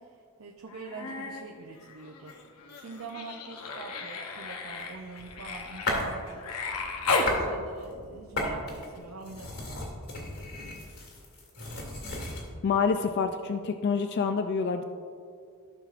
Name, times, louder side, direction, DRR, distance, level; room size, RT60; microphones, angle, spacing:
voice 1, 0.0-2.4 2.7-6.7 7.2-10.0, right 4 dB, 65° right, 0 dB, 0.7 m, -44 dB
Human voice, 0.7-1.4 1.8-7.4 9.0-9.1, left 3 dB, 90° left, 0.9 m, -34 dB
sound 1, 4.8-6.2 6.6-7.5 7.8-12.5, left 1 dB, 70° left, 2.2 m, -35 dB
voice 2, 12.6-14.8, left 5 dB, 50° left, 7 dB, 0.3 m, -27 dB
14.0 x 6.6 x 2.5 m, 2.2 s
head